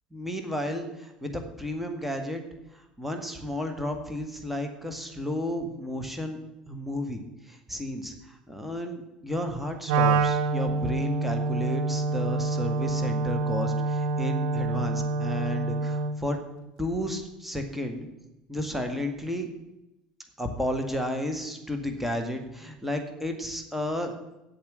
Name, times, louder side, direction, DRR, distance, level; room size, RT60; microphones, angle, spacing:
voice 1, 0.1-2.4 3.0-6.4 6.7-7.2 7.5-16.4 16.8-18.1 18.5-19.5 20.4-24.1, left 1 dB, 5° right, 5 dB, 2.0 m, -32 dB
Wind instrument woodwind instrument, 9.9-16.2, right 3 dB, 60° right, 1.0 m, -26 dB
8.6 x 7.9 x 8.1 m, 0.95 s
figure-of-eight pair, 65°, 4 cm